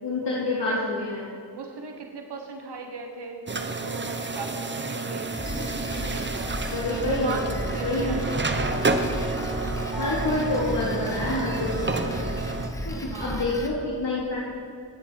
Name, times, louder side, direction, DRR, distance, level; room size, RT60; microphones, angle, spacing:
voice 1, 0.0-1.3 6.7-7.4 7.8-8.2 10.0-12.1 12.8-14.4, left 2 dB, 70° left, -7 dB, 2.6 m, -27 dB
voice 2, 1.5-6.5 6.9-7.4 7.7-8.7 13.1-13.5, right 4 dB, 65° right, 3 dB, 1.2 m, -39 dB
sound 1, 3.5-12.7, right 3 dB, 25° right, 0.9 m, -30 dB
Drum kit, 5.3-13.7, equal, 5° left, 1.5 m, -34 dB
Piano, 8.6-12.4 12.6-12.7, equal, 10° right, 3.6 m, -39 dB
18.0 x 8.6 x 4.6 m, 2.4 s
wide cardioid pair, 80°, 44 cm